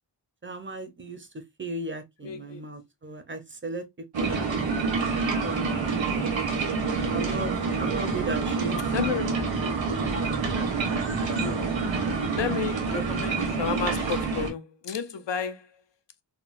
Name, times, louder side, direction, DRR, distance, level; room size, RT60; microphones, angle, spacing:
voice 1, 0.4-3.8 4.2-4.7 5.0-6.3 7.1-9.2, right 2 dB, 30° right, 0.5 m, -37 dB
voice 2, 2.2-2.6 5.0-5.2 8.9-9.3 11.4-11.7 12.3-15.7, left 7 dB, 70° left, 0.6 m, -32 dB
sound 1, 4.1-14.5, right 4 dB, 90° right, 1.1 m, -27 dB
3.5 x 2.1 x 2.4 m
wide cardioid pair, 130°, 44 cm